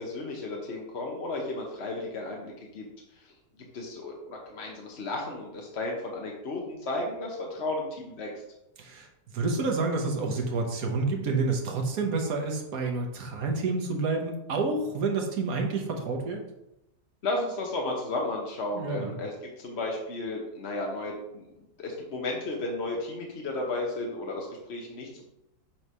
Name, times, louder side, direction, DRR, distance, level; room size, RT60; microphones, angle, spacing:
voice 1, 0.0-2.9 3.7-8.3 17.2-21.4 21.8-25.3, left 2 dB, 45° left, -1 dB, 1.0 m, -33 dB
voice 2, 8.8-9.1 9.3-16.4 18.7-19.1, right 3 dB, 55° right, 2 dB, 1.5 m, -29 dB
7.4 x 3.2 x 5.5 m, 0.89 s
omnidirectional pair, 1.9 m